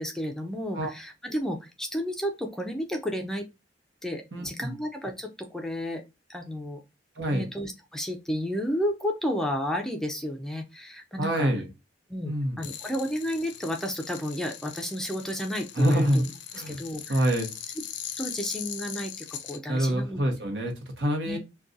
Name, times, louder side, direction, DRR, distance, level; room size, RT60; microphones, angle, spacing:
voice 1, 0.0-3.5 4.0-6.0 6.3-6.8 7.2-11.5 12.1-16.1 16.7-17.3 18.2-20.2 21.3-21.4, equal, 5° left, 0.4 m, -32 dB
voice 2, 4.3-4.7 7.2-7.5 11.2-11.7 12.2-12.6 15.8-16.3 16.5-16.8 17.1-17.5 19.7-21.4, equal, 75° right, 0.9 m, -26 dB
sound 1, 12.6-19.6, left 10 dB, 85° left, 0.4 m, -40 dB
2.5 x 2.3 x 3.8 m
head